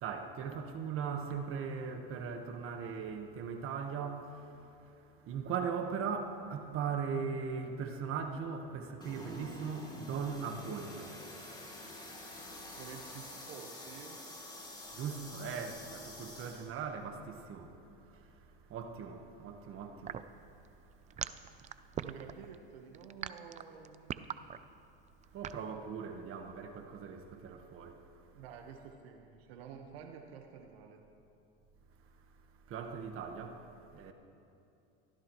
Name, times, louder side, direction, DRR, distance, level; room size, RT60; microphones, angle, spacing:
voice 1, 0.0-4.4 5.3-11.1 14.9-17.7 18.7-20.2 25.3-28.0 32.7-33.6 33.9-34.1, right 6 dB, 45° right, 1.4 m, -39 dB
sound 1, 9.0-16.7, left 1 dB, 15° left, 3.0 m, -48 dB
voice 2, 12.8-14.2 21.9-24.5 28.3-31.0 34.0-34.1, right 7 dB, 85° right, 1.3 m, -50 dB
sound 2, 20.0-25.6, right 9 dB, 25° right, 0.4 m, -41 dB
23.5 x 15.5 x 3.1 m
supercardioid pair, 115°, 29 cm